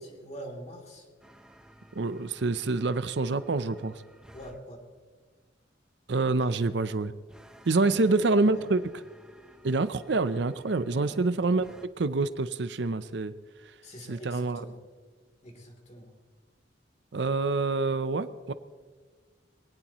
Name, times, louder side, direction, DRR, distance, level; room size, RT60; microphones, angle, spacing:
voice 1, 0.1-1.1 4.3-4.8 6.4-6.6 7.8-8.6 10.8-11.3 13.8-14.8 15.4-16.1, equal, 40° left, 2 dB, 3.2 m, -44 dB
sound 1, 1.2-4.6 7.3-11.9, right 1 dB, 5° right, 0.8 m, -55 dB
voice 2, 1.9-4.0 6.1-7.1 7.6-8.8 9.6-11.7 12.0-13.3 13.6-13.8 14.1-14.6 17.1-18.5, right 3 dB, 70° right, 13 dB, 0.6 m, -27 dB
23.5 x 18.0 x 3.0 m, 1.5 s
head